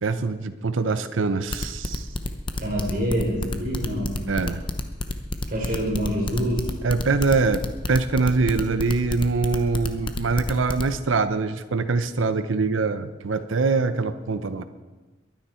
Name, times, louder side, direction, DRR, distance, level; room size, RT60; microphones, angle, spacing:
voice 1, 0.0-2.1 4.3-4.6 6.8-14.6, right 4 dB, 90° right, 10 dB, 0.7 m, -24 dB
sound 1, 1.5-10.8, left 2 dB, 25° left, 0.8 m, -29 dB
voice 2, 2.6-4.2 5.5-6.7, equal, 45° right, -2 dB, 3.6 m, -26 dB
22.0 x 9.6 x 4.4 m, 1.2 s
head